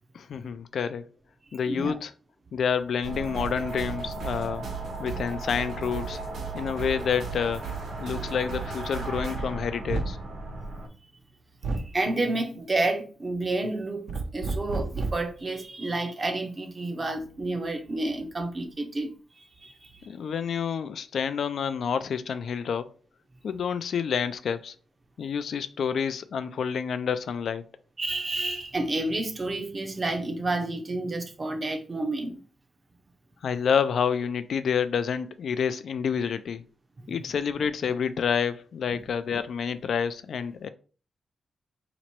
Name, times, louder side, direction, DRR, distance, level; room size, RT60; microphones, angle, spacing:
voice 1, 0.1-1.0 1.5-2.1 2.5-4.7 5.0-6.2 6.5-7.6 8.0-10.2 20.1-22.9 23.4-24.7 25.2-27.7 33.4-36.6 37.1-40.7, left 7 dB, 65° left, 0.3 m, -28 dB
sound 1, 3.0-10.9, right 3 dB, 85° right, 1.3 m, -35 dB
sound 2, 8.2-8.4 9.9-10.3 11.6-12.0 14.1-15.3, right 3 dB, 60° right, 0.6 m, -31 dB
voice 2, 11.7-14.1 14.3-19.1 19.4-19.9 28.0-32.4 37.0-37.2, right 2 dB, 30° right, 0.6 m, -30 dB
3.0 x 2.9 x 4.4 m
wide cardioid pair, 145°, 0 cm